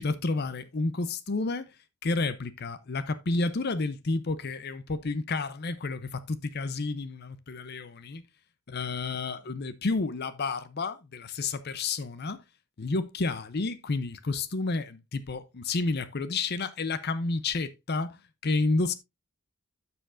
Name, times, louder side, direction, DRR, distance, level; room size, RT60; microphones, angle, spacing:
voice 1, 0.0-1.7 2.0-8.2 8.7-12.4 12.8-18.9, left 3 dB, 50° left, 0.6 m, -30 dB
12.5 x 6.9 x 2.5 m
head